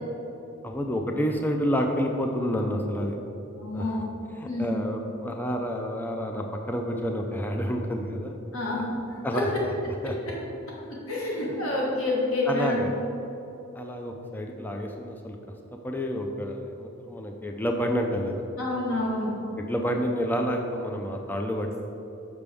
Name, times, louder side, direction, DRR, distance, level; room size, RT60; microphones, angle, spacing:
voice 1, 0.6-3.2 3.7-4.0 4.3-8.4 8.7-8.8 9.2-9.7 10.0-10.2 11.4-11.6 12.5-12.9 13.7-15.4 15.8-18.4 19.6-21.8, equal, 10° left, 2 dB, 0.4 m, -29 dB
voice 2, 3.6-4.0 4.4-4.8 8.5-8.9 11.1-12.8 18.6-19.3, left 2 dB, 85° left, -4 dB, 1.2 m, -28 dB
6.7 x 6.0 x 3.4 m, 3.0 s
head